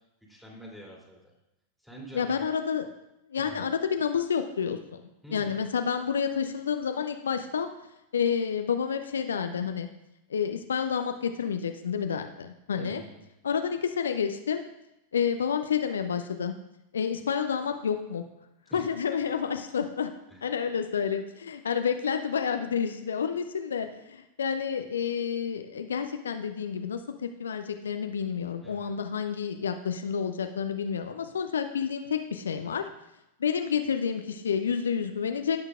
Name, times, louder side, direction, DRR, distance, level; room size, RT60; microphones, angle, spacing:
voice 1, 0.3-1.2 1.8-2.4 3.3-3.7 5.2-5.6 12.8-13.2 18.7-18.9 20.3-20.4 28.6-28.9, right 1 dB, ahead, -2 dB, 2.8 m, -46 dB
voice 2, 2.1-2.8 3.3-4.8 5.3-7.7 8.1-9.9 10.3-13.0 13.4-14.6 15.1-16.5 16.9-18.2 18.7-20.1 20.4-32.9 33.4-35.6, left 7 dB, 70° left, 7 dB, 0.6 m, -29 dB
16.5 x 6.5 x 2.4 m, 0.89 s
figure-of-eight pair, 90°, 0 cm